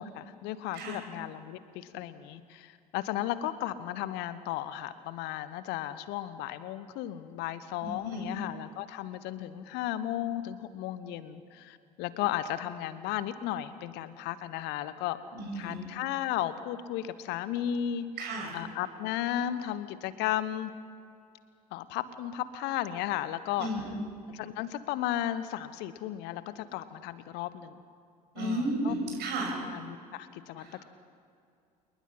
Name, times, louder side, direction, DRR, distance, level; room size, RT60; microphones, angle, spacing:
voice 1, 0.0-15.2 15.5-18.1 18.5-20.7 21.7-23.7 24.3-27.8 28.4-28.9 29.6-30.8, left 12 dB, 55° left, 14 dB, 1.2 m, -34 dB
voice 2, 7.8-8.3 15.3-15.8 18.2-18.5 23.6-24.0 28.3-29.6 30.6-30.8, right 1 dB, 55° right, -1 dB, 6.2 m, -33 dB
28.0 x 21.5 x 5.7 m, 2.5 s
figure-of-eight pair, 60°, 20 cm